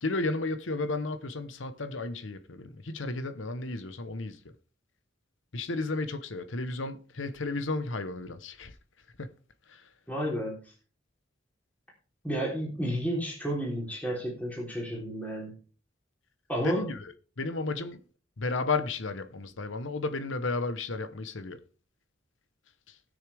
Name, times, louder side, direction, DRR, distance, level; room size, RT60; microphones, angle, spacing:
voice 1, 0.0-4.5 5.5-8.7 9.2-9.3 9.7-9.8 16.6-17.0 17.4-18.0 18.4-21.6, left 3 dB, 80° left, 1.0 m, -33 dB
voice 2, 10.1-10.7 12.2-15.6 16.5-16.9, equal, 10° left, 3.5 m, -31 dB
19.5 x 6.5 x 3.4 m
head